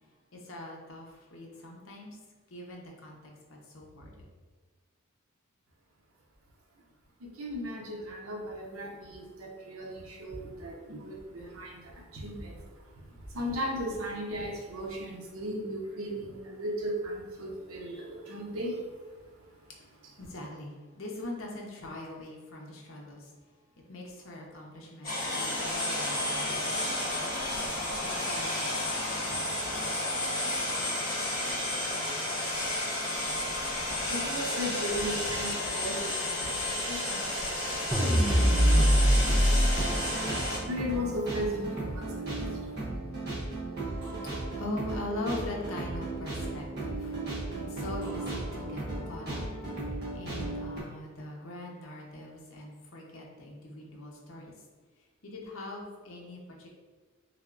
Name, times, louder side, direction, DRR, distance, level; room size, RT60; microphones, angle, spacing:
voice 1, 0.3-2.1 2.5-4.2 20.2-23.3 23.9-26.9 27.5-29.5 44.6-47.1 47.6-49.4 49.7-49.8 50.1-54.5 55.2-56.7, left 1 dB, 75° left, -1 dB, 0.8 m, -42 dB
voice 2, 7.2-19.0 20.0-20.3 34.1-42.8, equal, 80° right, 0 dB, 0.7 m, -37 dB
sound 1, 25.0-40.6, left 1 dB, 45° left, 1.4 m, -32 dB
sound 2, 37.9-39.7, equal, 10° right, 0.4 m, -22 dB
sound 3, 38.0-50.8, right 2 dB, 50° right, 1.3 m, -36 dB
3.4 x 3.3 x 2.5 m, 1.4 s
head